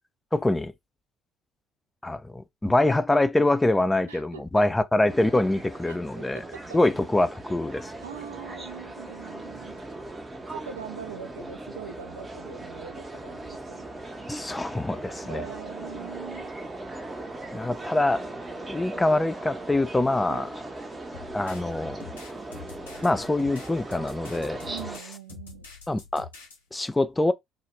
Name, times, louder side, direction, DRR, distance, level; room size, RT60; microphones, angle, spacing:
voice 1, 0.3-0.7 2.0-6.4 6.7-7.9 14.3-15.5 17.5-18.2 18.7-20.5 21.3-22.0 23.0-24.6 25.9-26.3 26.7-27.3, left 2 dB, 15° left, 0.4 m, -24 dB
voice 2, 4.1-4.7 6.2-6.8 8.0-9.8 10.5-13.9 15.2-16.5 20.3-20.5 24.6-25.7, right 8 dB, 85° right, 0.4 m, -42 dB
sound 1, 5.1-25.0, right 2 dB, 25° right, 0.6 m, -39 dB
sound 2, 21.1-26.6, left 5 dB, 90° left, 0.7 m, -45 dB
2.3 x 2.0 x 3.1 m
figure-of-eight pair, 50°, 0 cm